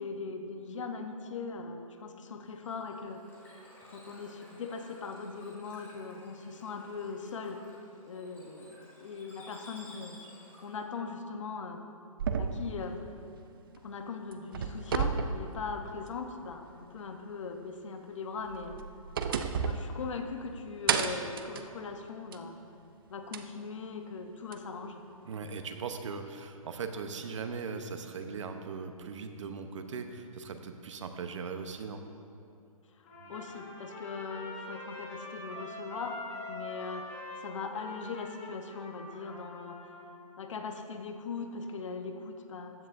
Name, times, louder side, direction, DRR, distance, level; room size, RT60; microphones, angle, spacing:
voice 1, 0.0-3.2 3.9-7.6 8.1-10.2 10.6-11.8 12.4-13.0 13.8-18.8 19.6-22.6 23.1-25.0 33.0-39.8 40.4-42.9, left 4 dB, 55° left, 6 dB, 0.9 m, -40 dB
Bird / Water, 2.5-10.9, left 1 dB, 10° left, 2.4 m, -55 dB
sound 1, 12.2-14.0 14.3-16.3 16.7-16.8 18.4-20.5 20.9-22.5 23.3-23.4 24.5-24.6, right 6 dB, 40° right, 0.5 m, -33 dB
voice 2, 25.2-32.0 33.2-33.3, right 5 dB, 55° right, 7 dB, 0.9 m, -39 dB
Trumpet, 33.0-40.1, left 2 dB, 25° left, 2.1 m, -44 dB
15.0 x 10.0 x 2.6 m, 2.5 s
hypercardioid pair, 165°, 19 cm